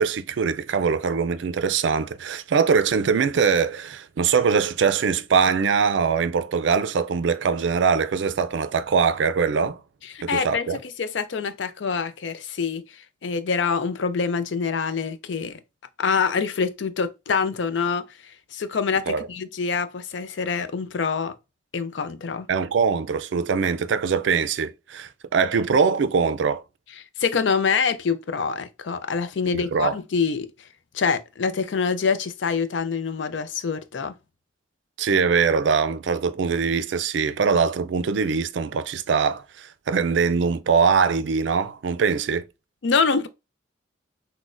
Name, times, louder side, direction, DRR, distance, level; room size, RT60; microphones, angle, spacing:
voice 1, 0.0-9.8 10.2-10.8 19.1-19.3 22.5-26.6 29.7-29.9 35.0-42.5, right 5 dB, 70° right, 0.4 m, -22 dB
voice 2, 10.1-15.6 16.0-21.4 21.7-22.5 27.2-30.5 30.9-34.1 42.8-43.3, left 5 dB, 70° left, 0.5 m, -25 dB
6.1 x 2.1 x 2.5 m
head